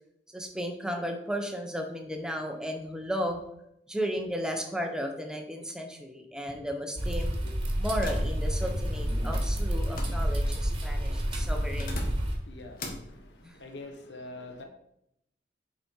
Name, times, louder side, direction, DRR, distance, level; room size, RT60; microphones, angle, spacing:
voice 1, 0.3-3.4 3.9-7.4 7.7-12.0 13.4-13.6, equal, 5° right, 3 dB, 1.1 m, -34 dB
sound 1, 7.0-12.4, equal, 30° right, 1.6 m, -29 dB
sound 2, 8.0-10.6 11.3-12.4 12.8-13.1, left 1 dB, 55° left, 1.5 m, -40 dB
voice 2, 12.5-12.8 13.6-14.6, left 2 dB, 85° left, 4 dB, 1.2 m, -43 dB
7.7 x 5.2 x 4.6 m, 0.78 s
head